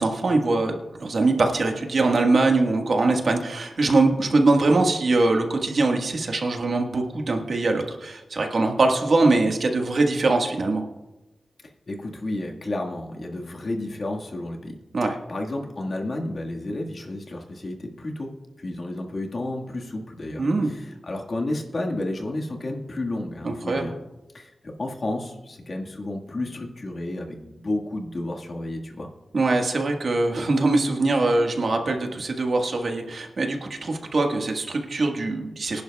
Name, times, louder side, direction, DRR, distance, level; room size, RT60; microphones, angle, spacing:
voice 1, 0.0-10.8 14.9-15.2 20.4-20.7 23.4-23.9 29.3-35.8, right 2 dB, 60° right, 2 dB, 1.5 m, -22 dB
voice 2, 11.9-14.8 15.3-23.9 24.3-29.1, left 1 dB, 50° left, 0 dB, 1.7 m, -31 dB
24.5 x 11.0 x 2.3 m, 1.0 s
wide cardioid pair, 125°, 0 cm